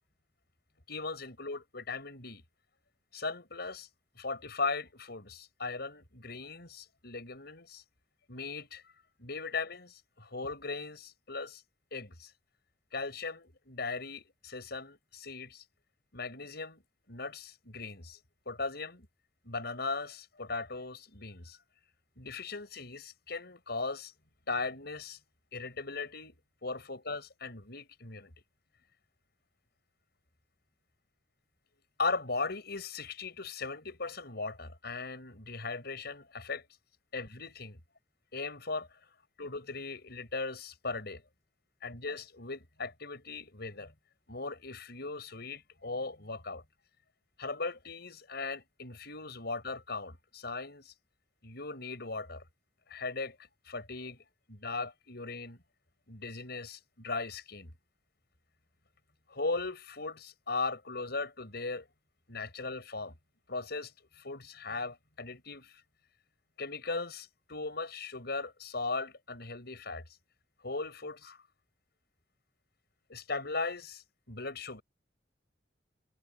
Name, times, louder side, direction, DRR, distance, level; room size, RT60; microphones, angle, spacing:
voice 1, 0.9-2.4 3.1-3.9 4.2-7.8 8.3-8.8 9.2-11.6 11.9-12.3 12.9-15.6 16.1-16.8 17.1-18.2 18.5-19.1 19.4-21.6 22.2-24.1 24.5-25.2 25.5-28.3 32.0-36.6 37.1-37.8 38.3-38.9 39.4-41.2 41.8-43.9 44.3-46.6 47.4-50.9 51.4-52.4 52.9-53.4 53.7-54.2 54.5-55.6 56.1-57.7 59.3-61.9 62.3-63.1 63.5-65.7 66.6-70.0 70.6-71.4 73.1-74.8, left 3 dB, 60° left, 7.0 m, -38 dB
head